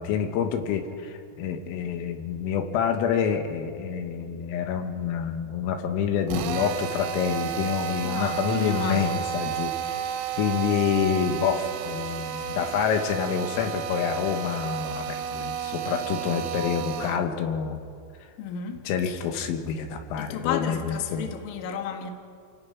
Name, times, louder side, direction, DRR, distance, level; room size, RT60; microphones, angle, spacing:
voice 1, 0.0-9.8 10.4-17.9 18.9-21.3, left 7 dB, 85° left, 6 dB, 3.9 m, -27 dB
Drill, 6.3-17.3, right 9 dB, 90° right, 3.8 m, -32 dB
voice 2, 8.0-9.3 18.4-19.2 20.2-22.1, left 8 dB, 60° left, 4 dB, 2.7 m, -33 dB
29.0 x 18.0 x 5.8 m, 2.3 s
omnidirectional pair, 5.9 m